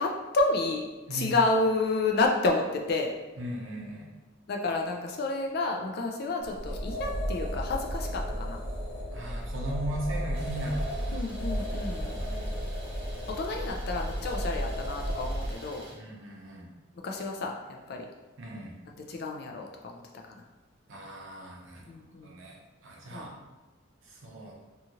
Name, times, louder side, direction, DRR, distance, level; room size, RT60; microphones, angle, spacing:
voice 1, 0.0-3.1 4.5-8.6 11.1-12.2 13.3-15.8 17.0-18.1 19.1-20.0 20.3-20.4 21.9-22.3 23.1-23.3, left 3 dB, 50° left, 2 dB, 0.4 m, -30 dB
voice 2, 3.4-4.2 9.1-11.3 12.2-12.5 15.9-16.7 18.4-18.8 20.9-21.9 22.2-23.3 24.0-24.5, right 1 dB, 70° right, -2 dB, 0.7 m, -38 dB
sound 1, 6.4-15.5, equal, 75° left, 1.1 m, -33 dB
Idling, 10.3-15.9, right 1 dB, 25° right, 0.7 m, -48 dB
2.7 x 2.4 x 2.8 m, 1.1 s
head